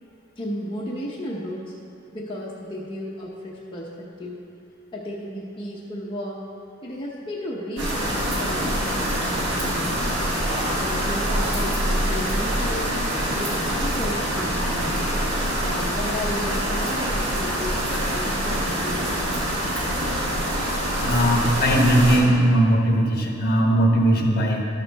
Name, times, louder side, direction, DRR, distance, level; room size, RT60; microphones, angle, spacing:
voice 1, 0.4-1.7 2.1-4.5 4.9-6.5 6.8-10.1 10.7-12.9 13.4-15.0 15.6-19.5, equal, 25° left, -4 dB, 0.8 m, -33 dB
sound 1, 7.8-22.2, equal, 60° right, 2.5 m, -25 dB
voice 2, 20.9-24.6, right 1 dB, 45° left, 0 dB, 1.2 m, -19 dB
12.0 x 6.7 x 4.0 m, 2.5 s
head